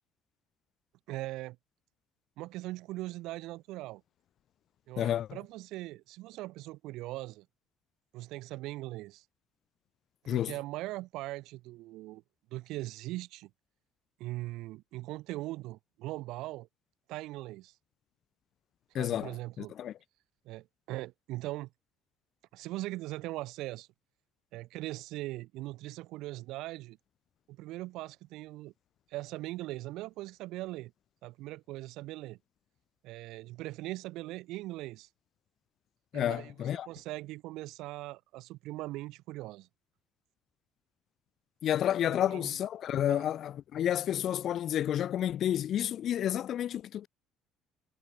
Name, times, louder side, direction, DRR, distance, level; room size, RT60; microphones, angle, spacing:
voice 1, 1.1-1.6 2.4-4.0 4.9-7.5 8.1-9.2 10.3-12.2 12.5-13.5 14.2-16.7 17.1-17.7 19.0-19.7 20.4-21.7 22.5-23.9 24.5-27.0 27.5-28.7 29.1-30.9 31.2-32.4 33.0-35.1 36.1-36.5 36.9-39.7 42.1-42.6 43.1-43.3, right 18 dB, 70° right, 0.6 m, -40 dB
voice 2, 5.0-5.4 10.3-10.5 18.9-19.9 36.1-36.9 41.6-47.1, left 11 dB, 45° left, 1.0 m, -30 dB
cardioid pair, 155°, 0 cm